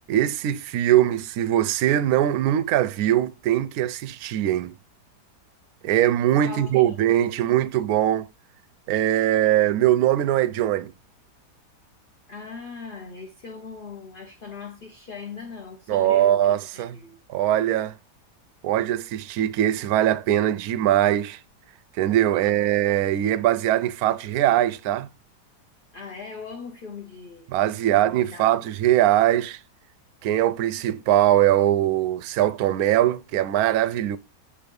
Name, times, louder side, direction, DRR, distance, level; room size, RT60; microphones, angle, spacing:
voice 1, 0.1-4.8 5.8-8.3 8.9-10.9 15.9-17.0 17.3-17.9 18.6-21.4 22.0-25.1 27.5-29.6 30.2-34.2, right 12 dB, 70° right, 1.0 m, -21 dB
voice 2, 6.4-7.0 12.3-16.4 16.7-17.2 22.3-22.7 25.9-27.5 27.8-28.6, left 4 dB, 45° left, 0.8 m, -40 dB
7.0 x 3.2 x 5.3 m
omnidirectional pair, 1.8 m